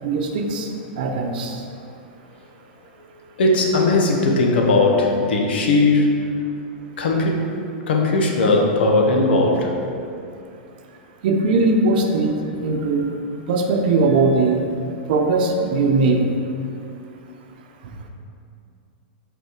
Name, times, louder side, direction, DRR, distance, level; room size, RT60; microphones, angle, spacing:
voice 1, 0.0-0.7 1.0-1.6 11.2-13.1 13.5-14.6 15.1-16.3, right 3 dB, 60° right, 3 dB, 0.7 m, -19 dB
voice 2, 3.4-6.2 7.0-7.4 7.9-9.7, left 2 dB, 80° left, 0 dB, 1.0 m, -18 dB
5.6 x 4.3 x 4.5 m, 2.5 s
supercardioid pair, 155°, 6 cm